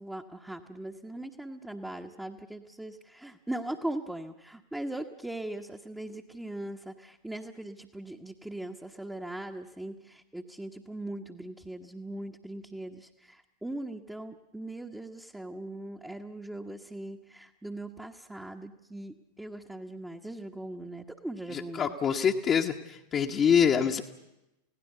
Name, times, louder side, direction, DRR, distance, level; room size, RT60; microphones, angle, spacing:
voice 1, 0.0-21.9, right 1 dB, 5° right, 1 dB, 1.2 m, -40 dB
voice 2, 21.5-24.0, left 7 dB, 25° left, 1 dB, 1.3 m, -25 dB
29.0 x 17.0 x 6.9 m, 0.90 s
figure-of-eight pair, 90°, 0 cm